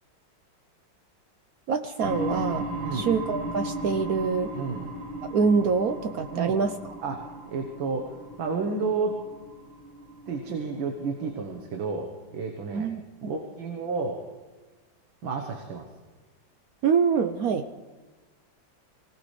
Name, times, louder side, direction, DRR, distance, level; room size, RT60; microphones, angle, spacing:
voice 1, 1.7-2.7 2.9-4.6 5.3-6.7 12.7-13.0 16.8-17.7, right 5 dB, 65° right, 8 dB, 0.9 m, -25 dB
sound 1, 2.0-11.6, right 1 dB, 40° right, 3.7 m, -36 dB
voice 2, 2.8-3.1 4.5-4.8 6.3-6.6 7.0-9.2 10.3-12.9 13.2-14.2 15.2-15.9, right 4 dB, 85° right, 3 dB, 2.0 m, -31 dB
25.0 x 17.5 x 3.3 m, 1.2 s
omnidirectional pair, 2.1 m